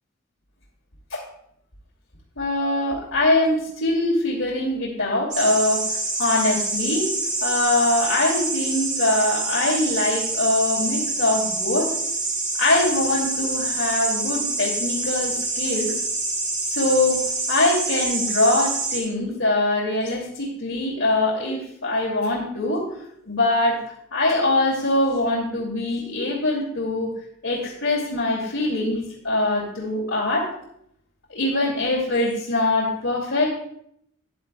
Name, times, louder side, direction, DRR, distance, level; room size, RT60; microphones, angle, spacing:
voice 1, 2.4-7.1 7.4-11.9 12.6-16.0 16.7-17.2 17.5-22.9 23.2-23.8 24.1-27.1 27.4-30.5 31.3-33.5, left 2 dB, 75° left, -6 dB, 2.6 m, -23 dB
sound 1, 5.3-19.0, right 3 dB, 40° right, 3.6 m, -26 dB
14.0 x 10.0 x 2.3 m, 0.72 s
head